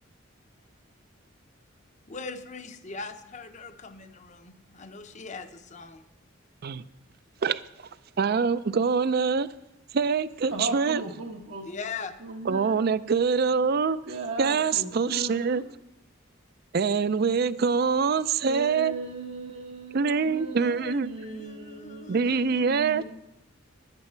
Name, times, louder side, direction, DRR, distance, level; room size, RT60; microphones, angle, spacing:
voice 1, 2.1-6.0 11.6-12.2 20.5-22.7 23.0-23.1, left 4 dB, 35° left, 0.7 m, -41 dB
voice 2, 8.2-9.5 9.9-11.0 12.5-14.0 14.4-15.6 16.7-18.9 19.9-21.1 22.1-23.0, right 5 dB, 50° right, 0.4 m, -24 dB
voice 3, 10.5-11.7 12.2-12.8 14.0-15.6 18.4-22.2 22.7-23.0, right 2 dB, 80° right, 1.2 m, -37 dB
10.5 x 9.7 x 4.4 m
head